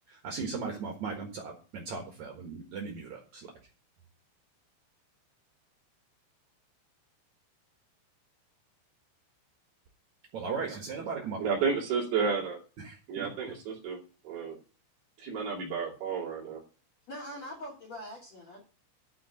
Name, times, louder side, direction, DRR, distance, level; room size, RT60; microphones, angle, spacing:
voice 1, 0.1-3.5 10.3-11.5 12.8-13.3, right 5 dB, 75° right, 1.7 m, -37 dB
voice 2, 11.4-12.6 13.1-14.0 14.2-14.6 15.2-16.6, right 5 dB, 55° right, 4.0 m, -31 dB
voice 3, 17.1-18.6, equal, 40° left, 2.8 m, -42 dB
11.5 x 4.7 x 7.9 m
omnidirectional pair, 5.8 m